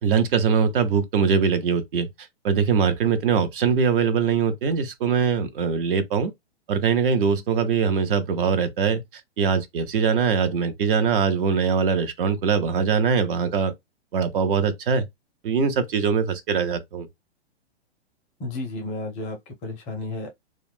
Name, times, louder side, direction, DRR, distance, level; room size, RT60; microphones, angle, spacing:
voice 1, 0.0-6.3 6.7-9.0 9.4-13.7 14.1-15.0 15.4-17.1, right 6 dB, 50° right, 0.7 m, -22 dB
voice 2, 18.4-20.3, left 2 dB, 20° left, 0.5 m, -32 dB
2.3 x 2.0 x 3.4 m
hypercardioid pair, 125°, 34 cm